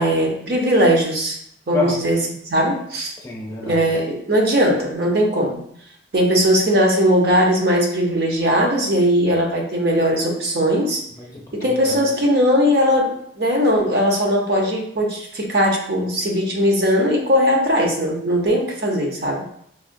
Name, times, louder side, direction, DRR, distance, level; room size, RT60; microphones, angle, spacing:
voice 1, 0.0-1.4 1.7-3.1 3.6-5.6 6.1-11.0 11.5-19.4, equal, 55° right, 0 dB, 0.7 m, -19 dB
voice 2, 3.2-3.9 11.2-12.1, left 5 dB, 20° left, -3 dB, 0.6 m, -28 dB
4.8 x 2.1 x 2.6 m, 0.68 s
head